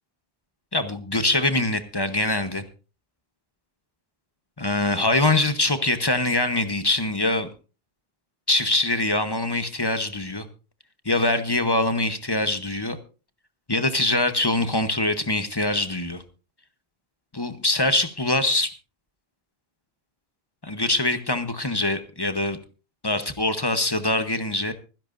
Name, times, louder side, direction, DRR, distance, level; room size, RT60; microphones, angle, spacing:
voice 1, 0.7-2.6 4.6-7.5 8.5-10.5 11.0-13.0 13.7-16.2 17.3-18.7 20.6-22.6 23.0-24.7, left 2 dB, 25° left, 9 dB, 1.0 m, -23 dB
25.0 x 10.5 x 2.6 m, 0.33 s
omnidirectional pair, 1.0 m